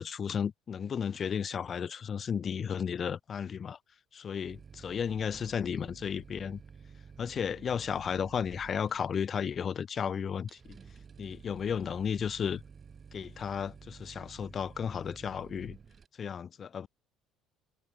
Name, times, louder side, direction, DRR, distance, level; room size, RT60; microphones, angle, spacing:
voice 1, 0.0-3.8 4.1-6.6 7.2-10.7 11.2-12.6 13.1-15.8 16.2-16.9, left 7 dB, 45° left, 0.5 m, -34 dB
sound 1, 4.5-16.1, right 6 dB, 35° right, 1.6 m, -52 dB
hypercardioid pair, 65°, 0 cm